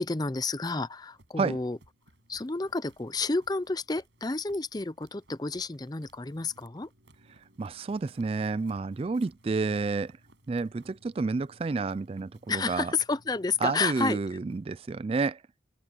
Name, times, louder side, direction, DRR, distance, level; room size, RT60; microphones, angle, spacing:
voice 1, 0.0-1.8 2.3-6.9 12.5-14.2, left 3 dB, 20° left, 0.6 m, -30 dB
sound 1, 1.1-14.8, right 1 dB, 90° right, 7.7 m, -60 dB
voice 2, 7.6-10.2 10.5-12.9 13.6-15.4, right 4 dB, 30° right, 0.3 m, -30 dB
head